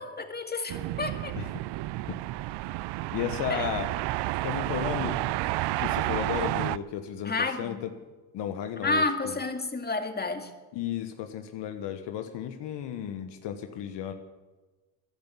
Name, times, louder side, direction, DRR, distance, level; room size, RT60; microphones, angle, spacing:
voice 1, 0.0-1.4 3.5-3.7 7.2-7.8 8.8-10.5, left 3 dB, 20° left, 6 dB, 2.1 m, -30 dB
sound 1, 0.7-6.8, right 17 dB, 70° right, 0.6 m, -31 dB
voice 2, 3.1-3.9 4.4-5.2 5.8-7.9 8.3-9.4 10.7-14.1, left 9 dB, 70° left, 7 dB, 1.3 m, -34 dB
14.0 x 10.5 x 8.5 m, 1.2 s
supercardioid pair, 60°, 43 cm